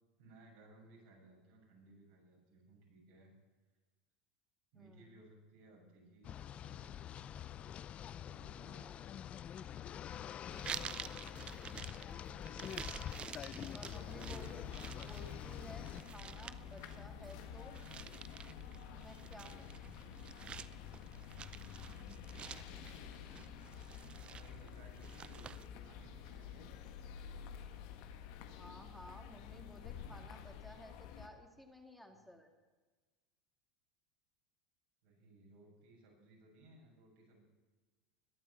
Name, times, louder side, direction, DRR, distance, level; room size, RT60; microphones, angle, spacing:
voice 1, 0.2-3.3 4.7-7.5 8.1-9.0 11.2-12.6 13.9-14.7 21.5-22.3 22.6-23.9 24.2-26.7 32.1-32.3 35.0-37.4, right 2 dB, 65° right, -1 dB, 7.1 m, -62 dB
voice 2, 4.7-5.2 8.8-9.2 13.7-17.8 18.9-19.7 28.5-32.5, equal, ahead, 2 dB, 2.6 m, -55 dB
sound 1, 6.2-16.0, left 10 dB, 35° left, 0.5 m, -46 dB
sound 2, 10.5-25.7, right 8 dB, 30° right, 0.6 m, -50 dB
sound 3, 13.9-31.3, left 8 dB, 60° left, 1.6 m, -50 dB
21.5 x 9.0 x 7.4 m, 1.3 s
hypercardioid pair, 90°, 3 cm